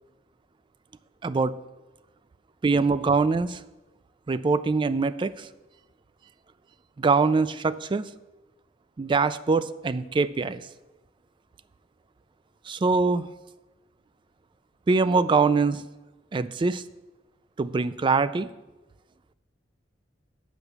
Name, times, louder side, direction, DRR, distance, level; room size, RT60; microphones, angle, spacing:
voice 1, 1.2-1.6 2.6-3.6 4.3-5.5 7.0-8.1 9.0-10.6 12.7-13.3 14.9-15.8 16.3-16.8 17.6-18.5, right 4 dB, 25° right, 14 dB, 0.3 m, -23 dB
8.2 x 5.9 x 6.8 m, 1.1 s
head